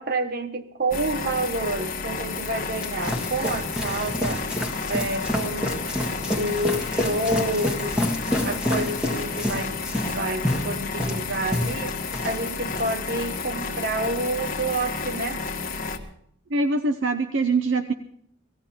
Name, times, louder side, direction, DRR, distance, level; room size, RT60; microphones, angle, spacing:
voice 1, 0.0-4.4 4.9-5.8 6.3-8.0 8.4-9.7 10.1-12.0 12.2-15.4, right 2 dB, 50° right, 9 dB, 1.2 m, -28 dB
sound 1, 0.9-16.0, left 4 dB, 45° left, 1.3 m, -31 dB
sound 2, 2.5-12.4 12.7-13.1, left 1 dB, 5° right, 1.6 m, -28 dB
voice 2, 16.5-17.9, right 3 dB, 65° right, 8 dB, 0.7 m, -23 dB
17.5 x 15.0 x 4.4 m, 0.69 s
head